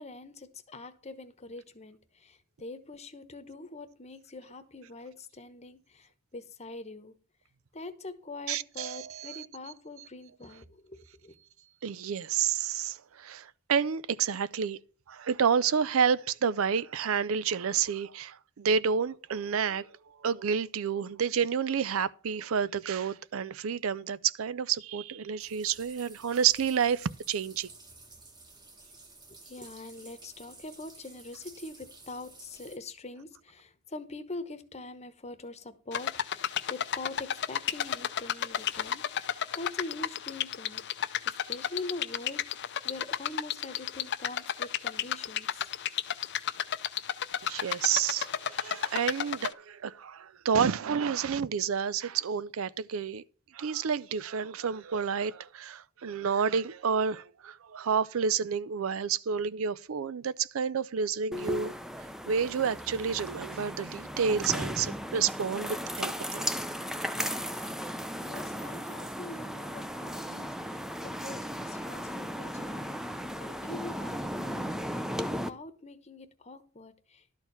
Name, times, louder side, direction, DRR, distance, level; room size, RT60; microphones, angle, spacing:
voice 1, 0.0-7.1 7.7-11.3 29.5-45.7 68.2-72.8 73.1-75.0 75.4-77.2, left 2 dB, 30° left, 1.0 m, -44 dB
voice 2, 8.5-9.5 11.8-14.8 15.1-19.9 20.2-27.7 47.4-53.2 53.5-61.7 62.3-66.4 70.4-70.5, right 7 dB, 75° right, 0.5 m, -29 dB
sound 1, 25.4-32.8, right 3 dB, 20° right, 1.5 m, -53 dB
sound 2, 35.9-49.5, left 9 dB, 55° left, 0.5 m, -33 dB
sound 3, 61.3-75.5, equal, ahead, 0.5 m, -36 dB
12.0 x 4.6 x 6.9 m
head